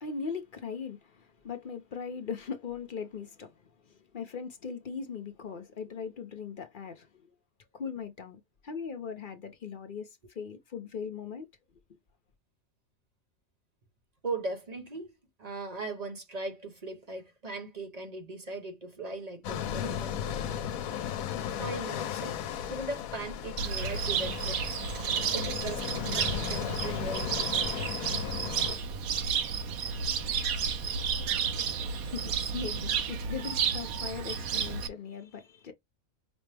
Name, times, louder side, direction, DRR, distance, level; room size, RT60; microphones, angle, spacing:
voice 1, 0.0-7.3 7.7-11.5 31.8-35.7, left 6 dB, 45° left, 0.7 m, -39 dB
voice 2, 14.2-15.1 15.4-20.7 21.5-22.4 22.7-24.6 25.3-27.5, right 2 dB, 35° right, 0.9 m, -39 dB
sound 1, 19.4-28.8, left 9 dB, 80° left, 1.0 m, -35 dB
Cricket, 23.6-34.9, right 6 dB, 85° right, 1.2 m, -32 dB
5.2 x 2.0 x 3.3 m
omnidirectional pair, 1.5 m